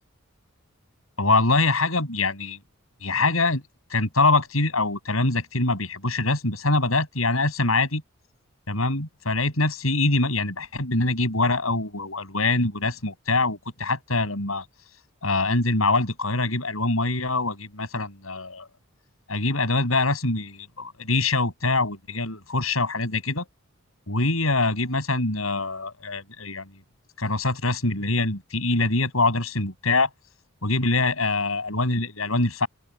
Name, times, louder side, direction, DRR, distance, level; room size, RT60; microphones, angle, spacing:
voice 1, 1.2-2.6 3.0-3.6 3.9-8.0 8.7-14.6 15.2-18.7 19.3-23.5 24.1-26.7 27.2-30.1 30.6-32.7, left 2 dB, 75° left, 7.6 m, -24 dB
open air
head